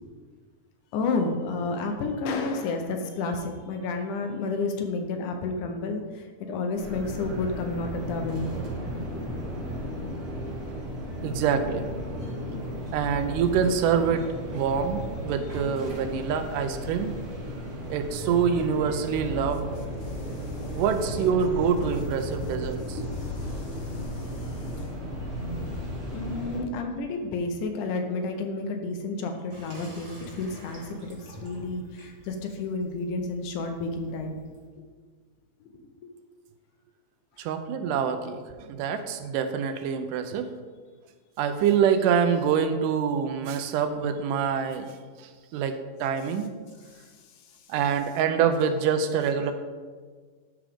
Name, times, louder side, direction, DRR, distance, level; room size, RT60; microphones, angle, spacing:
voice 1, 0.9-8.5 20.0-20.8 22.9-24.8 26.1-34.4 35.6-35.7 36.0-36.1 46.9-47.7, left 3 dB, 75° left, 4 dB, 2.1 m, -31 dB
sound 1, 6.7-26.6, equal, 55° right, 3.8 m, -34 dB
voice 2, 11.2-11.9 12.9-17.2 17.9-19.8 20.7-23.0 37.4-40.5 41.4-46.5 47.7-49.5, right 7 dB, 80° right, 8 dB, 2.1 m, -26 dB
Water tap faucet / Sink (filling or washing), 29.5-34.7, equal, 30° right, 1.6 m, -48 dB
12.5 x 4.9 x 3.5 m, 1.5 s
omnidirectional pair, 3.9 m